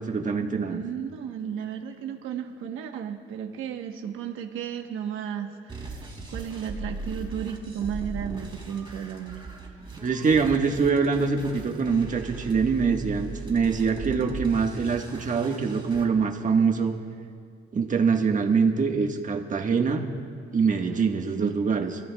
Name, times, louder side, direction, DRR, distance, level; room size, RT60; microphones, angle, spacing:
voice 1, 0.0-0.8 10.0-16.9 17.7-20.1 20.5-22.0, right 5 dB, 40° right, 3 dB, 1.4 m, -24 dB
voice 2, 0.7-10.1 20.9-21.5, right 8 dB, 85° right, 4 dB, 1.1 m, -34 dB
sound 1, 5.7-16.1, right 3 dB, 25° right, 3.2 m, -38 dB
28.0 x 14.0 x 2.3 m, 2.1 s
cardioid pair, 90°, 20 cm